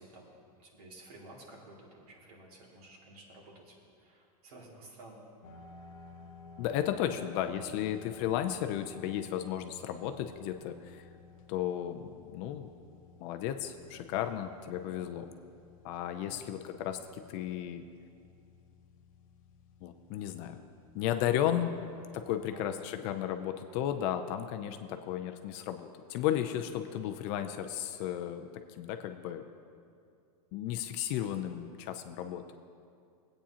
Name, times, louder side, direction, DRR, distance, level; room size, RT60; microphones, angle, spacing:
voice 1, 0.0-5.2 14.8-15.3 16.2-16.5 21.3-21.4 22.3-22.8, right 2 dB, 70° right, -2 dB, 2.3 m, -53 dB
sound 1, 5.4-22.7, left 5 dB, 60° left, 0.8 m, -55 dB
voice 2, 6.6-11.1 11.5-12.7 13.2-15.2 15.8-17.9 19.8-20.6 20.9-21.7 22.1-29.4 30.5-32.4, left 11 dB, 30° left, 7 dB, 0.4 m, -34 dB
18.0 x 8.7 x 2.8 m, 2.4 s
supercardioid pair, 160°, 20 cm